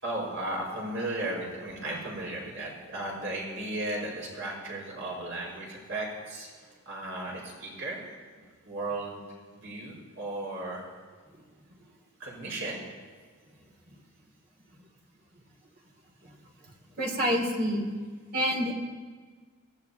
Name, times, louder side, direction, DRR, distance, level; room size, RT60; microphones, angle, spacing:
voice 1, 0.0-6.5 6.8-8.0 8.6-9.2 9.5-10.9 12.2-12.8, right 1 dB, 60° right, -3 dB, 5.1 m, -35 dB
voice 2, 17.0-17.9 18.3-18.7, equal, 45° right, 1 dB, 2.6 m, -27 dB
22.5 x 16.5 x 2.8 m, 1.5 s
head